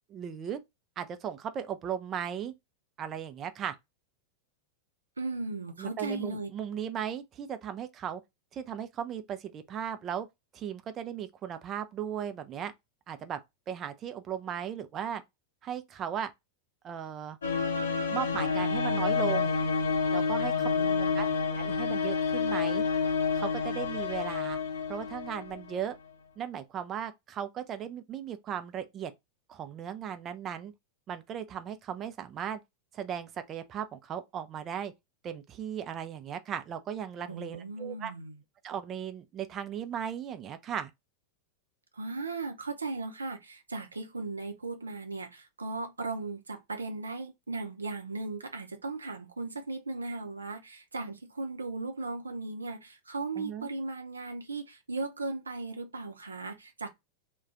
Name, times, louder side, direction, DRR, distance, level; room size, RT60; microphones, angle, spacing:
voice 1, 0.1-0.6 1.0-2.5 3.0-3.8 5.8-8.2 8.5-10.3 10.5-12.7 13.1-13.4 13.7-15.2 15.6-16.3 16.8-17.4 18.1-19.6 20.1-20.7 21.2-22.9 23.3-24.6 24.9-26.0 26.4-29.1 29.5-30.7 31.1-32.6 32.9-34.9 35.2-38.1 38.6-40.9 53.4-53.7, right 9 dB, 30° right, 0.4 m, -36 dB
voice 2, 5.2-6.5 20.5-21.5 37.3-38.3 41.9-56.9, right 3 dB, 75° right, 0.6 m, -37 dB
sound 1, 17.4-25.8, left 5 dB, 70° left, 0.7 m, -29 dB
2.4 x 2.2 x 3.6 m
figure-of-eight pair, 90°, 0 cm